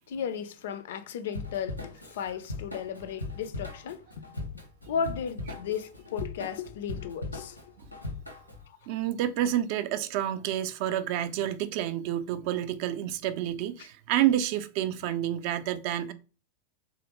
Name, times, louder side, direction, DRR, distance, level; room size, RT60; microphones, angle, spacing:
voice 1, 0.1-7.6 8.7-8.8, left 7 dB, 55° left, 0.3 m, -35 dB
Drum kit / Drum, 1.3-8.6, left 2 dB, 90° left, 0.7 m, -39 dB
voice 2, 8.9-16.1, right 11 dB, 45° right, 0.4 m, -29 dB
3.3 x 2.4 x 2.9 m
figure-of-eight pair, 90°, 0 cm